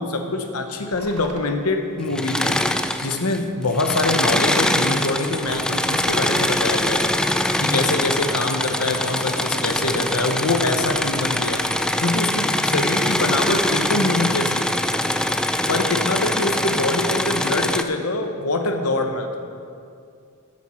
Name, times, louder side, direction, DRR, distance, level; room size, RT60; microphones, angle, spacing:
voice 1, 0.0-2.6 3.0-7.1 7.6-11.6 12.0-14.6 15.7-19.3, left 2 dB, 75° left, 5 dB, 1.0 m, -24 dB
sound 1, 0.9-1.5 2.5-2.8 3.8-4.4 5.2-6.2, right 4 dB, 80° right, 1.1 m, -42 dB
Engine / Mechanisms, 2.1-3.4 3.7-17.8, left 1 dB, 5° left, 0.3 m, -23 dB
14.0 x 9.8 x 4.5 m, 2.4 s
head